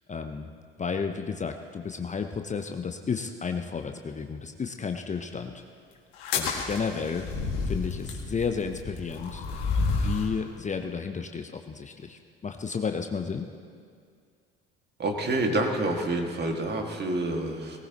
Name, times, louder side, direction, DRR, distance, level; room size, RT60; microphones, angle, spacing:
voice 1, 0.1-0.5 0.8-5.5 6.3-7.3 7.7-9.4 9.9-13.5, left 5 dB, 25° left, 5 dB, 0.8 m, -32 dB
sound 1, 6.1-10.4, left 4 dB, 65° left, 2.1 m, -30 dB
voice 2, 15.0-17.8, right 2 dB, 35° right, 2 dB, 2.2 m, -28 dB
19.0 x 18.5 x 3.1 m, 2.2 s
hypercardioid pair, 55°, 29 cm